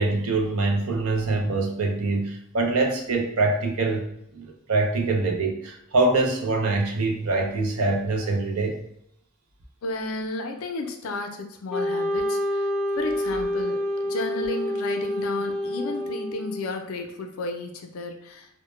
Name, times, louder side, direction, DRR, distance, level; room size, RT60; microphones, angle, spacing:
voice 1, 0.0-8.8, right 3 dB, 75° right, 2 dB, 0.5 m, -24 dB
voice 2, 9.8-12.7 13.0-18.5, left 2 dB, 75° left, 5 dB, 0.4 m, -33 dB
Wind instrument woodwind instrument, 11.7-16.8, left 1 dB, ahead, 0.4 m, -28 dB
2.1 x 2.0 x 3.0 m, 0.76 s
head